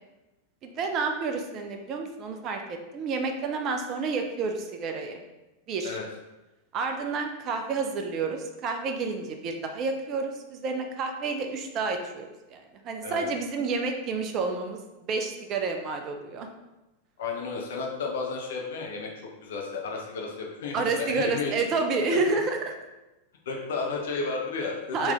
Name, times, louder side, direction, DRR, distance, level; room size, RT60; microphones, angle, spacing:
voice 1, 0.6-5.2 5.7-6.0 6.7-14.8 15.1-16.5 20.7-22.7 24.9-25.1, right 4 dB, 35° right, 4 dB, 0.5 m, -29 dB
voice 2, 17.2-19.1 19.4-21.5 22.1-22.2 23.5-25.1, left 4 dB, 60° left, 0 dB, 0.8 m, -32 dB
3.9 x 3.0 x 3.5 m, 1.0 s
figure-of-eight pair, 90°, 0 cm